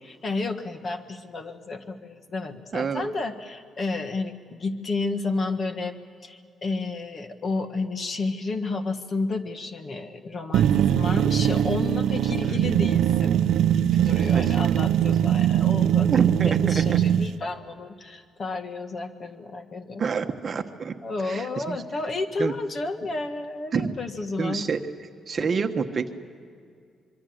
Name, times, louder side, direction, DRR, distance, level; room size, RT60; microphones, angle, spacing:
voice 1, 0.0-13.4 13.7-20.0 21.0-24.7, left 3 dB, 35° left, 7 dB, 1.6 m, -31 dB
voice 2, 2.7-3.1 12.5-12.7 14.3-14.5 16.1-17.0 20.0-20.9 21.2-21.8 22.4-22.5 23.7-23.9 24.4-24.8 25.3-26.1, right 5 dB, 35° right, 6 dB, 1.2 m, -27 dB
sound 1, 10.5-17.3, right 10 dB, 75° right, 0.6 m, -21 dB
25.5 x 24.0 x 7.9 m, 2.3 s
cardioid pair, 165°, 0 cm